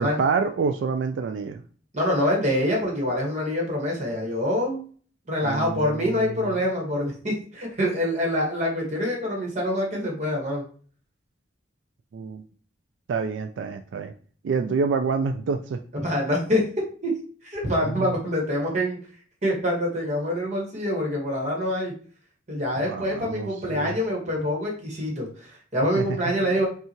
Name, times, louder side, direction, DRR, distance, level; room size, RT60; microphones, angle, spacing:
voice 1, 0.0-1.6 5.4-6.5 12.1-12.4 13.1-14.1 14.4-15.8 17.6-18.1 22.8-24.0 26.0-26.1 26.4-26.6, right 5 dB, 80° right, 7 dB, 0.3 m, -28 dB
voice 2, 1.9-4.8 5.3-10.6 15.9-16.7 17.0-17.1 17.4-19.0 19.4-21.9 22.5-26.7, left 1 dB, 40° right, -1 dB, 1.4 m, -25 dB
5.5 x 2.4 x 2.9 m, 0.44 s
head